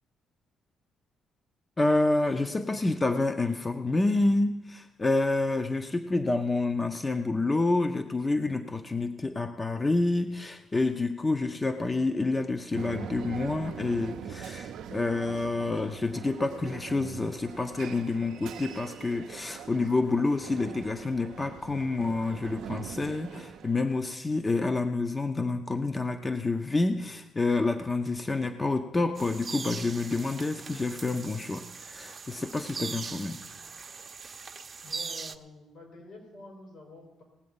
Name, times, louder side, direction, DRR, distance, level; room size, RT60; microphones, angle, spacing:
voice 1, 1.8-33.4, left 2 dB, 25° left, 7 dB, 0.6 m, -28 dB
sound 1, 12.7-24.0, right 9 dB, 80° right, 0.5 m, -42 dB
sound 2, 29.2-35.3, right 5 dB, 35° right, 0.6 m, -40 dB
voice 2, 34.8-37.2, left 2 dB, 75° left, 2 dB, 4.4 m, -48 dB
18.5 x 7.7 x 5.5 m, 1.0 s
cardioid pair, 90°, 0 cm